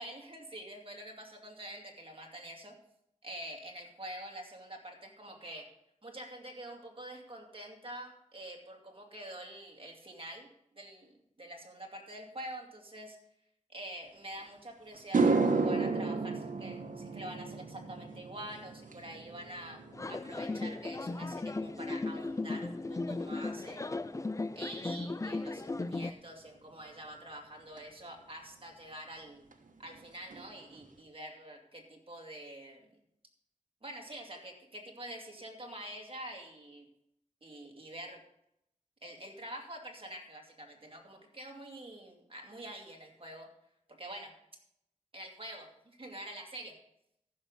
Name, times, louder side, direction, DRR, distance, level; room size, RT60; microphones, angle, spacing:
voice 1, 0.0-2.7 3.2-5.7 6.0-10.5 10.7-13.2 13.7-19.8 20.1-23.9 24.6-29.4 29.8-32.9 33.8-36.9 37.4-38.2 39.0-43.5 43.9-44.3 45.1-46.8, right 1 dB, 45° right, 2 dB, 2.4 m, -46 dB
sound 1, 14.4-14.5 14.9-23.4 23.7-24.2 27.8-27.9 29.5-29.6 29.9-30.0 30.3-30.8, right 4 dB, 85° right, 1.0 m, -34 dB
sound 2, 19.9-26.1, left 3 dB, 25° left, 0.4 m, -36 dB
14.0 x 6.5 x 5.3 m, 0.77 s
wide cardioid pair, 70°, 13 cm